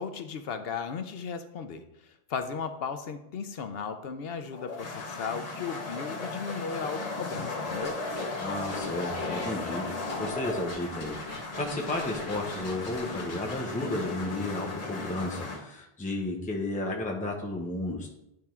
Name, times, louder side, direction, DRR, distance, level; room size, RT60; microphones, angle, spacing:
voice 1, 0.0-8.0, left 6 dB, 70° left, 9 dB, 0.8 m, -36 dB
sound 1, 4.5-15.6, left 3 dB, 40° left, 1.1 m, -36 dB
sound 2, 7.8-9.5 10.1-13.5, left 1 dB, 85° left, 2.0 m, -45 dB
voice 2, 8.4-9.9 10.2-11.2 11.6-18.1, left 2 dB, 10° left, -1 dB, 0.8 m, -33 dB
10.5 x 3.5 x 4.4 m, 0.83 s
omnidirectional pair, 1.1 m